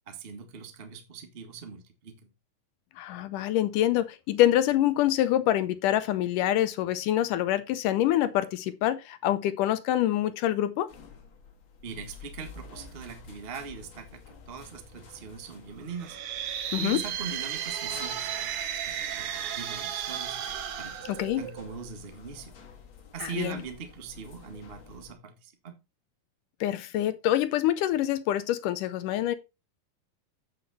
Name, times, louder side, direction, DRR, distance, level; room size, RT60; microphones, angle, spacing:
voice 1, 0.1-2.3 11.8-16.2 16.7-20.4 20.8-22.5 23.1-25.8, right 6 dB, 65° right, 0.5 m, -41 dB
voice 2, 3.0-10.9 16.7-17.0 21.2-21.4 23.2-23.6 26.6-29.3, left 13 dB, 75° left, 2.1 m, -26 dB
sound 1, 10.9-25.1, left 5 dB, 45° left, 1.9 m, -50 dB
sound 2, 15.9-21.8, right 9 dB, 80° right, 1.2 m, -34 dB
8.2 x 7.7 x 4.2 m
omnidirectional pair, 4.1 m